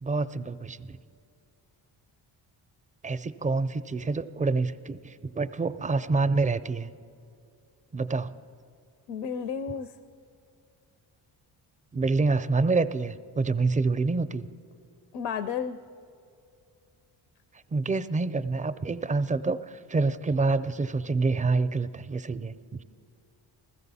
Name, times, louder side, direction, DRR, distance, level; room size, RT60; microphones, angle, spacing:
voice 1, 0.0-1.0 3.0-6.9 7.9-8.3 11.9-14.5 17.7-22.8, right 3 dB, 15° right, 13 dB, 0.4 m, -27 dB
voice 2, 9.1-9.9 15.1-15.8, left 7 dB, 85° left, 12 dB, 0.6 m, -32 dB
15.0 x 13.5 x 4.1 m, 2.5 s
supercardioid pair, 55°, 50 cm